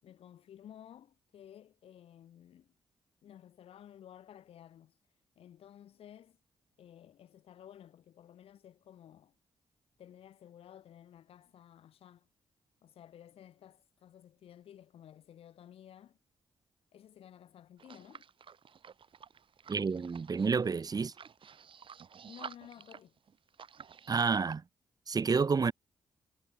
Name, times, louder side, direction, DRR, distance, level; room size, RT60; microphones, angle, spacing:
voice 1, 0.0-2.7 3.2-5.0 5.3-6.4 6.8-9.3 10.0-12.3 12.8-16.2 16.9-18.3 22.3-23.1, left 10 dB, 70° left, 6.9 m, -54 dB
sound 1, 17.8-24.6, right 7 dB, 60° right, 3.0 m, -51 dB
voice 2, 19.7-21.1 24.1-24.6 25.1-25.7, right 5 dB, 40° right, 0.8 m, -29 dB
hypercardioid pair, 45°, 10 cm